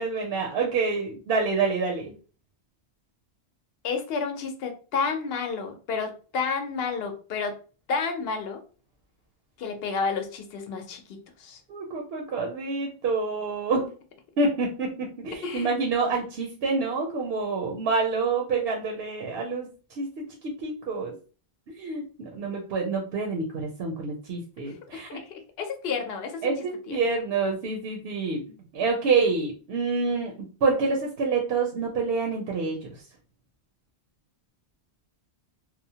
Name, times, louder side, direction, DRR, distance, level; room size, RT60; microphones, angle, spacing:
voice 1, 0.0-2.1 11.7-13.9 14.4-19.7 20.0-20.1 20.4-21.1 21.8-25.2 26.4-28.4 28.7-30.3 30.6-32.9, right 4 dB, 70° right, 1 dB, 0.8 m, -27 dB
voice 2, 3.8-7.5 7.9-8.6 9.6-11.6 15.4-15.7 24.9-26.5 26.9-27.0, left 5 dB, 65° left, 6 dB, 0.8 m, -31 dB
2.9 x 2.1 x 2.7 m, 0.37 s
omnidirectional pair, 1.1 m